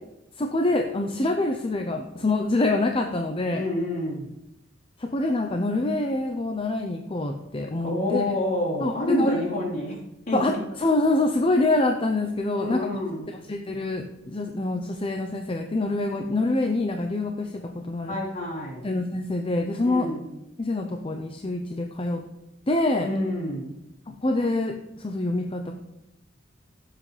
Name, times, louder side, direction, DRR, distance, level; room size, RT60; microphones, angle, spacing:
voice 1, 0.4-3.6 5.0-8.2 8.8-9.4 10.3-12.9 13.3-18.2 18.8-20.1 20.6-22.2 22.7-23.1 24.1-25.7, left 2 dB, 30° left, 4 dB, 0.7 m, -26 dB
voice 2, 3.5-4.3 7.8-10.0 10.3-10.6 12.5-13.3 18.0-18.8 19.8-20.2 23.0-23.7, left 1 dB, 50° left, -6 dB, 3.9 m, -28 dB
16.5 x 7.6 x 3.3 m, 0.89 s
head